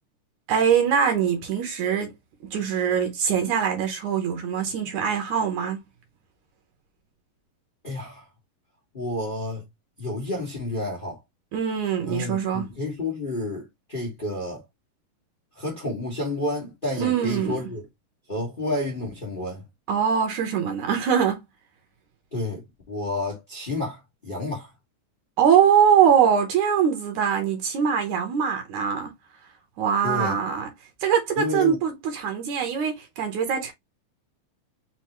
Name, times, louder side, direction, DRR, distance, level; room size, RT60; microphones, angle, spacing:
voice 1, 0.5-2.1 2.5-5.8 11.5-12.7 17.0-17.6 19.9-21.4 25.4-29.1 29.8-30.7 31.0-33.7, right 8 dB, 70° right, 2.3 m, -22 dB
voice 2, 7.8-8.2 8.9-9.6 10.0-11.2 12.1-14.6 15.5-17.8 18.3-19.6 22.3-22.6 22.9-24.7 30.0-30.4 31.4-31.8, left 2 dB, 40° left, 0.6 m, -30 dB
5.7 x 2.7 x 3.0 m
omnidirectional pair, 3.8 m